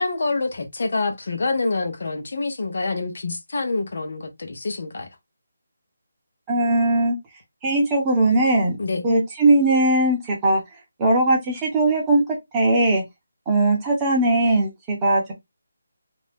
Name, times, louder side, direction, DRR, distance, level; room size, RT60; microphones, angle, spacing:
voice 1, 0.0-5.1 8.8-9.0, left 3 dB, 60° left, 0.7 m, -26 dB
voice 2, 6.5-7.1 7.6-8.8 9.0-10.6 11.0-12.2 12.5-13.0 13.5-15.3, right 2 dB, 15° right, 0.8 m, -19 dB
2.5 x 2.0 x 3.4 m
figure-of-eight pair, 170°, 0 cm